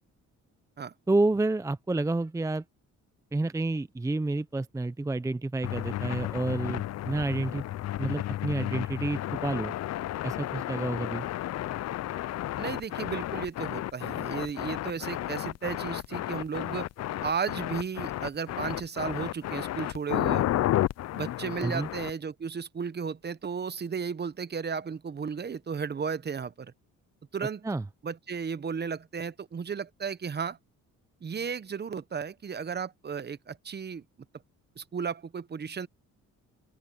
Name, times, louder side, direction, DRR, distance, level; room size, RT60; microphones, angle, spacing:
voice 1, 1.1-2.6 3.3-7.6 8.0-9.7 10.2-11.3 21.6-21.9 27.6-27.8, right 2 dB, 10° right, 0.6 m, -29 dB
sound 1, 5.6-22.1, left 14 dB, 60° left, 0.5 m, -32 dB
voice 2, 12.6-16.9 17.2-20.4 21.1-26.7 27.3-27.6 28.0-30.6 31.2-34.0 34.8-35.9, right 6 dB, 35° right, 1.0 m, -34 dB
open air
cardioid pair, 90°, 30 cm